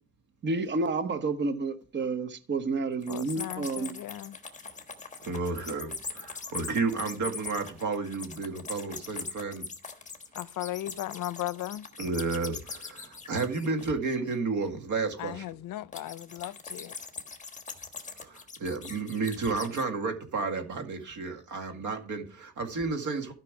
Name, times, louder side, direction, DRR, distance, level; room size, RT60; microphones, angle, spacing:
voice 1, 0.4-3.9, right 3 dB, 35° right, 1.0 m, -30 dB
sound 1, 3.0-14.3 15.9-19.9, left 5 dB, 25° left, 1.3 m, -41 dB
voice 2, 3.1-4.4 10.3-11.9 15.2-16.9, left 15 dB, 75° left, 0.5 m, -37 dB
voice 3, 5.2-9.6 12.0-15.4 18.2-23.3, right 4 dB, 65° right, 2.0 m, -32 dB
13.0 x 5.8 x 4.8 m
cardioid pair, 140°, 32 cm